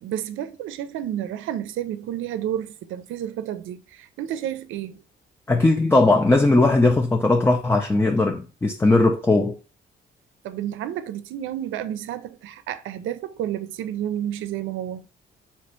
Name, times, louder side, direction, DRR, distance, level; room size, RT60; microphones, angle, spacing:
voice 1, 0.0-5.0 10.4-15.1, right 11 dB, 80° right, 0.5 m, -31 dB
voice 2, 5.5-9.6, left 2 dB, 10° left, 0.4 m, -18 dB
3.3 x 2.8 x 4.3 m
cardioid pair, 90°, 20 cm